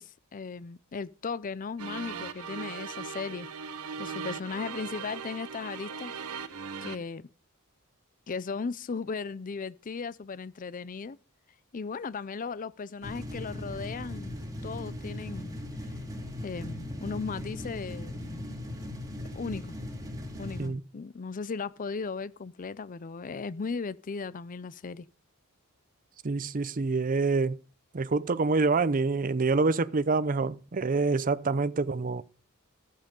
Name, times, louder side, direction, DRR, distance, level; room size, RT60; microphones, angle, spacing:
voice 1, 0.0-3.5 4.0-6.1 6.8-7.3 8.3-11.2 11.7-14.3 14.6-15.5 16.4-18.6 19.4-19.8 20.4-25.1, left 5 dB, 40° left, 0.5 m, -37 dB
sound 1, 1.8-7.0, right 6 dB, 85° right, 1.1 m, -39 dB
sound 2, 13.0-20.7, left 1 dB, 15° right, 2.4 m, -38 dB
voice 2, 26.2-27.6 27.9-32.2, right 3 dB, 40° right, 0.6 m, -26 dB
14.5 x 7.5 x 5.3 m
head